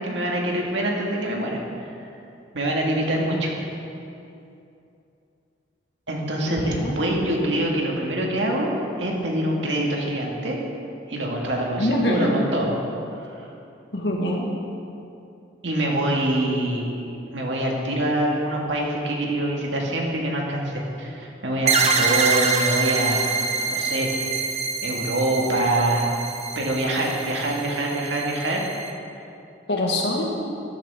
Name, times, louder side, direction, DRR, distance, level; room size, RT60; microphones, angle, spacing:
voice 1, 0.0-1.6 2.5-3.5 6.1-10.6 11.1-12.8 15.6-23.2 23.5-26.1 26.6-28.6, right 1 dB, 85° right, -1 dB, 1.9 m, -25 dB
voice 2, 6.4-7.0 11.8-12.3 13.9-14.5 29.7-30.2, left 1 dB, 70° left, -1 dB, 1.6 m, -24 dB
sound 1, 21.7-28.9, right 5 dB, 35° right, 0.8 m, -25 dB
13.5 x 9.9 x 3.6 m, 2.7 s
head